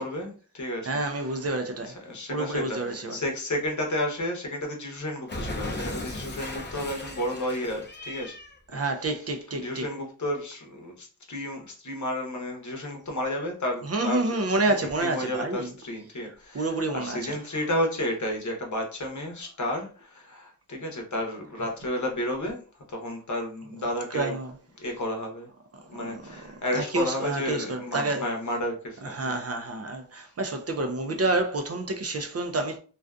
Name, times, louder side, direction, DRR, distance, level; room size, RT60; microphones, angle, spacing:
voice 1, 0.0-1.5 1.8-8.3 8.7-22.6 22.9-24.4 24.8-25.5 25.9-29.4 32.1-32.2, left 1 dB, 50° left, 0.8 m, -32 dB
voice 2, 0.9-2.0 2.3-3.2 8.7-9.8 13.9-15.7 16.5-17.4 24.1-24.5 26.0-28.3 29.0-32.8, right 2 dB, 45° right, 0.4 m, -29 dB
Cat, 5.3-8.6, left 1 dB, 30° left, 0.5 m, -36 dB
2.5 x 2.4 x 2.2 m
wide cardioid pair, 60°, 36 cm